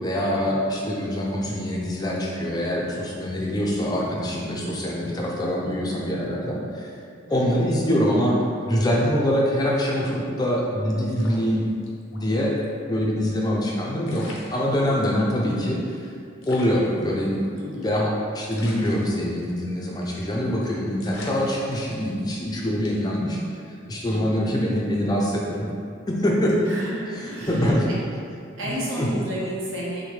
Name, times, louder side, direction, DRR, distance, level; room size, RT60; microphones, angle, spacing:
voice 1, 0.0-6.9 7.3-8.4 8.7-11.6 12.1-12.5 12.9-14.3 14.5-16.1 16.5-17.3 17.8-23.4 23.9-25.7 26.1-26.6 27.5-27.9 29.0-29.1, equal, 20° left, -3 dB, 0.4 m, -24 dB
voice 2, 7.3-7.6 17.5-17.9 24.1-24.4 26.7-28.0 28.6-30.1, equal, 90° right, -6 dB, 1.1 m, -32 dB
sound 1, 11.0-12.2 12.6-12.7 13.7-13.8 14.0-15.2 15.7-15.8 16.0-16.1 16.4-18.0 18.5-19.7 20.0-20.3 20.6-20.7 21.0-22.4 22.8-23.2, left 2 dB, 85° left, 0.7 m, -43 dB
6.1 x 2.1 x 3.2 m, 2.3 s
head